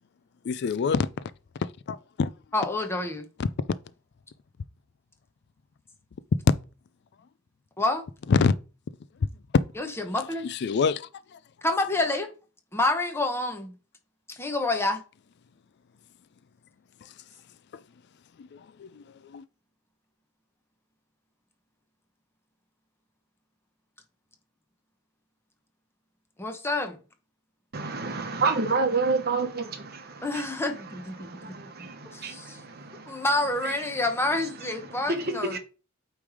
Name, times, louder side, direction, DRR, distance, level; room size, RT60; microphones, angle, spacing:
voice 1, 0.5-1.1 1.9-2.3 3.4-3.5 8.3-8.5 10.4-11.1 18.8-18.9 19.3-19.4, left 5 dB, 55° left, 0.4 m, -24 dB
voice 2, 2.5-3.3 7.8-8.1 9.8-10.5 11.6-12.3 12.7-13.7 14.3-15.0 26.4-27.0 30.2-31.3 32.1-32.4 33.1-35.5, left 2 dB, 10° left, 1.0 m, -28 dB
voice 3, 27.7-35.6, right 4 dB, 50° right, 1.0 m, -31 dB
8.6 x 3.3 x 4.8 m
head